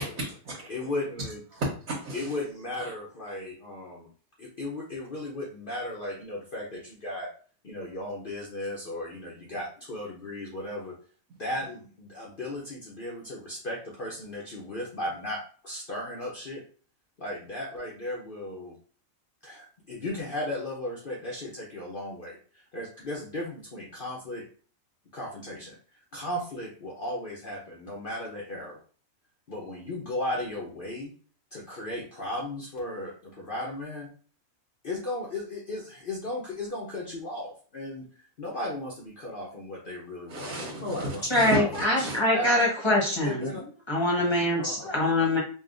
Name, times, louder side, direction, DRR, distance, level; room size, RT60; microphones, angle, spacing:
voice 1, 0.2-0.7 1.5-2.3 2.8-2.9 40.3-42.2, right 2 dB, 90° right, -6 dB, 1.4 m, -33 dB
voice 2, 0.7-1.4 2.1-4.1 4.4-7.3 7.6-10.9 11.4-16.6 17.2-18.8 19.4-24.4 25.1-25.8 26.1-28.8 29.5-31.1 31.5-34.1 34.8-38.0 38.4-40.5 40.8-41.7 42.0-42.1 42.3-42.6 43.2-43.6 44.6-44.9, left 1 dB, 50° left, -3 dB, 0.8 m, -35 dB
voice 3, 41.3-43.5 43.9-45.4, left 1 dB, 20° left, -3 dB, 1.0 m, -24 dB
5.1 x 2.3 x 2.5 m, 0.41 s
omnidirectional pair, 1.4 m